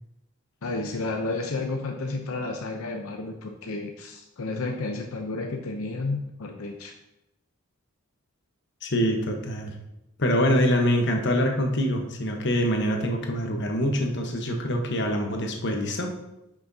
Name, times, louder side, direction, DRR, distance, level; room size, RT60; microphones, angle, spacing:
voice 1, 0.6-6.9, left 3 dB, 80° left, 3 dB, 0.7 m, -31 dB
voice 2, 8.8-9.7 10.2-16.1, equal, 55° left, 2 dB, 1.1 m, -25 dB
10.5 x 6.1 x 2.8 m, 0.90 s
head